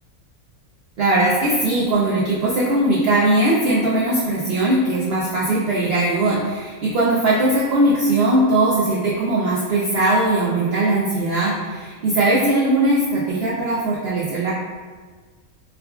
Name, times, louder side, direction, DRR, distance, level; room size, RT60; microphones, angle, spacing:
voice 1, 1.0-14.5, right 2 dB, 90° right, -6 dB, 0.5 m, -19 dB
4.7 x 2.3 x 2.3 m, 1.4 s
omnidirectional pair, 1.6 m